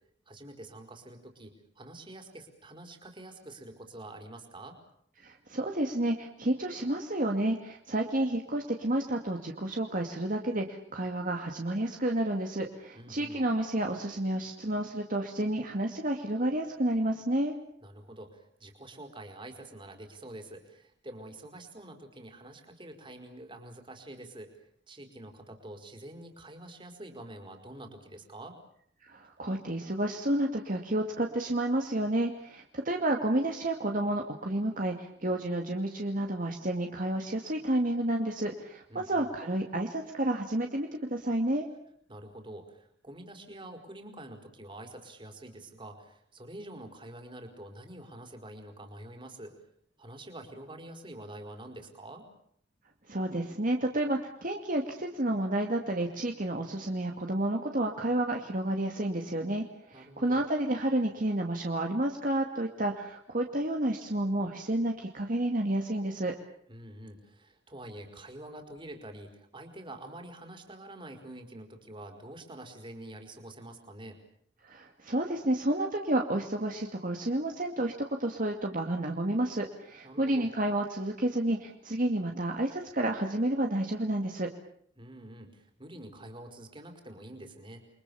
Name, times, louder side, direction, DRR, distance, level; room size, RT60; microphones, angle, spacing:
voice 1, 0.3-4.8 12.9-13.4 17.8-24.5 24.9-28.6 38.9-39.3 42.1-49.5 50.0-52.3 59.9-60.4 66.7-74.2 80.0-80.5 85.0-87.8, right 1 dB, 25° right, 5 dB, 4.8 m, -46 dB
voice 2, 5.2-17.5 29.0-41.7 53.1-66.3 74.6-84.5, right 1 dB, 45° right, 2 dB, 2.4 m, -30 dB
29.0 x 24.0 x 7.1 m, 0.67 s
head